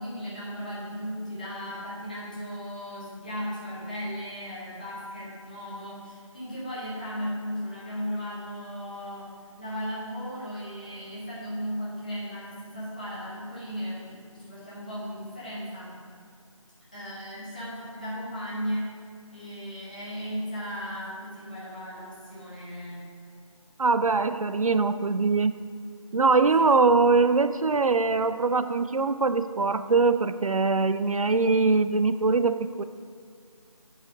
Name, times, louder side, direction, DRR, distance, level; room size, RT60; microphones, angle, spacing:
voice 1, 0.0-9.3 9.6-14.0 14.3-16.0 16.9-18.9 19.3-23.1 26.6-27.2, equal, 15° left, -9 dB, 1.1 m, -36 dB
voice 2, 23.8-25.5 26.1-32.8, right 4 dB, 80° right, 11 dB, 0.4 m, -22 dB
7.8 x 4.8 x 5.1 m, 2.2 s
figure-of-eight pair, 170°, 18 cm